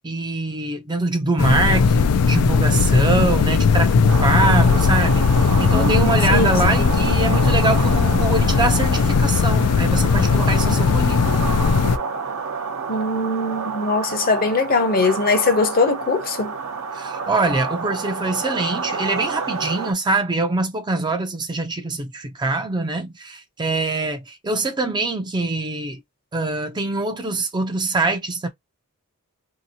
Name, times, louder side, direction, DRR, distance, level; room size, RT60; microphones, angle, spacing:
voice 1, 0.0-11.2 16.9-26.0 26.3-28.5, right 2 dB, 20° right, 0.4 m, -24 dB
sound 1, 1.4-12.0, left 5 dB, 85° left, 0.4 m, -18 dB
sound 2, 4.1-19.9, right 5 dB, 65° right, 0.7 m, -29 dB
voice 2, 5.7-6.5 12.9-16.5, left 3 dB, 40° left, 0.7 m, -21 dB
2.9 x 2.8 x 2.7 m
head